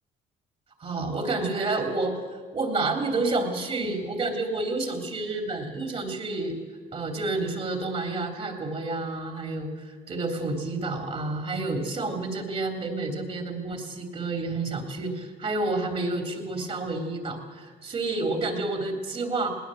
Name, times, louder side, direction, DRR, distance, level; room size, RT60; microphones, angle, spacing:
voice 1, 0.8-2.2 2.5-6.6 6.9-19.5, right 2 dB, 40° right, 4 dB, 3.2 m, -29 dB
19.5 x 19.0 x 7.7 m, 1.5 s
cardioid pair, 110°, 17 cm